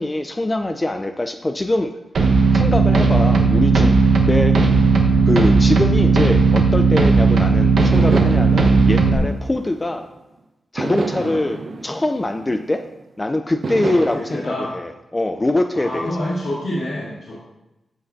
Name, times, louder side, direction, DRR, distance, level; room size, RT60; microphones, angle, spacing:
voice 1, 0.0-1.9 2.5-4.0 4.3-4.5 5.3-10.1 10.7-12.8 13.2-16.4, left 2 dB, 15° left, 7 dB, 0.4 m, -23 dB
sound 1, 2.1-9.1, right 4 dB, 65° right, 1.1 m, -15 dB
sound 2, 7.9-10.2 10.8-13.0 13.6-14.1, right 3 dB, 45° right, 0.7 m, -29 dB
voice 2, 11.1-11.4 13.8-14.7 15.7-17.4, left 1 dB, 80° left, -11 dB, 2.6 m, -28 dB
14.0 x 5.6 x 2.6 m, 0.97 s
wide cardioid pair, 145°, 0 cm